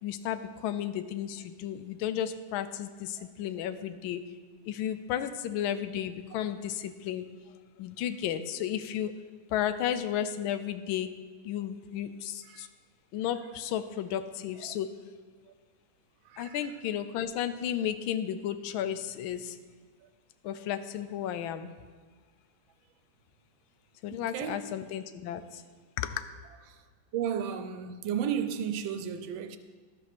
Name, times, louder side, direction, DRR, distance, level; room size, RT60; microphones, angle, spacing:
voice 1, 0.0-4.2 4.7-9.1 9.5-11.1 11.4-12.7 13.1-15.0 16.4-19.6 20.4-21.7 24.0-25.6 26.0-26.2, left 10 dB, 80° left, 1.4 m, -33 dB
voice 2, 16.2-16.7 20.0-20.1 24.1-24.7 26.7-26.8 27.1-29.6, right 8 dB, 80° right, 1.4 m, -34 dB
12.0 x 4.9 x 6.0 m
omnidirectional pair, 2.2 m